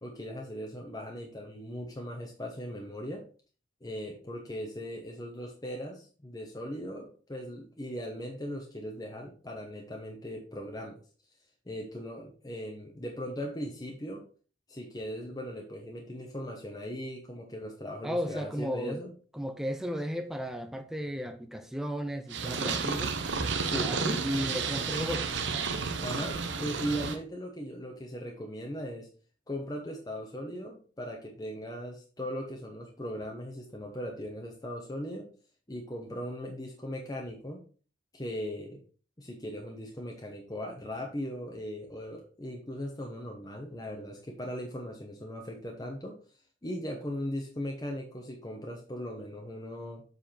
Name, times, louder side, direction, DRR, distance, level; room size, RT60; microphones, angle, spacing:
voice 1, 0.0-3.2 3.8-11.0 11.7-14.2 14.7-19.1 23.6-23.9 26.0-29.1 29.5-35.3 35.7-37.6 38.1-38.8 39.2-46.2 46.6-50.0, equal, 20° left, 0.9 m, -38 dB
voice 2, 18.0-19.0 19.3-23.2 23.7-25.4, equal, ahead, 0.5 m, -34 dB
Purr, 22.3-27.2, right 5 dB, 65° right, 0.9 m, -31 dB
7.4 x 4.8 x 4.3 m
head